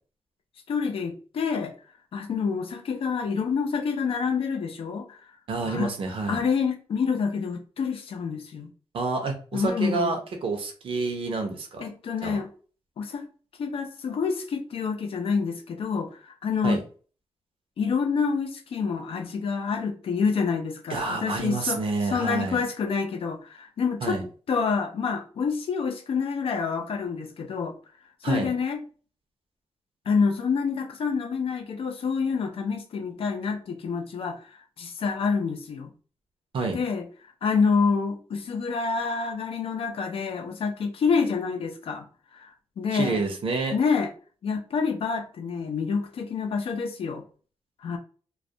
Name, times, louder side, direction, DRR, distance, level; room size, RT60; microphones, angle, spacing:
voice 1, 0.7-1.7 2.1-5.2 5.7-5.9 6.3-8.7 9.5-10.2 11.8-12.5 13.0-13.3 13.6-16.8 17.8-24.2 24.5-27.8 28.2-28.8 30.1-35.9 36.7-37.1 37.4-42.1 42.3-42.5 42.8-43.2 43.7-44.1 44.4-47.2 47.8-48.0, left 5 dB, 65° left, 0.5 m, -27 dB
voice 2, 5.5-6.4 8.9-11.9 12.2-12.4 16.6-16.8 20.9-22.6 24.0-24.2 28.2-28.5 36.5-36.8 42.9-43.8, right 3 dB, 60° right, 0.6 m, -28 dB
2.3 x 2.1 x 2.6 m
wide cardioid pair, 125°, 10 cm